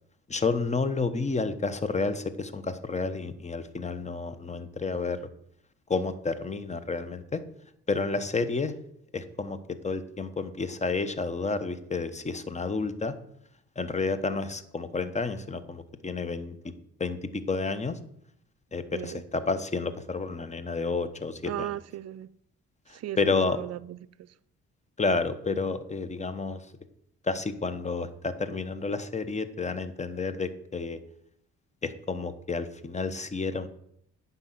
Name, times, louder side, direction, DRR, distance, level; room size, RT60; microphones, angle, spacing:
voice 1, 0.3-5.2 5.9-7.4 7.9-8.7 9.1-13.1 13.8-16.6 17.0-18.0 18.7-21.7 22.9-23.6 25.0-26.7 27.2-31.0 31.8-33.7, left 4 dB, 25° left, 1.1 m, -30 dB
voice 2, 18.9-19.2 21.4-22.3 22.9-23.2 23.5-24.3, right 13 dB, 55° right, 0.5 m, -36 dB
9.8 x 5.7 x 7.9 m
cardioid pair, 90°, 30 cm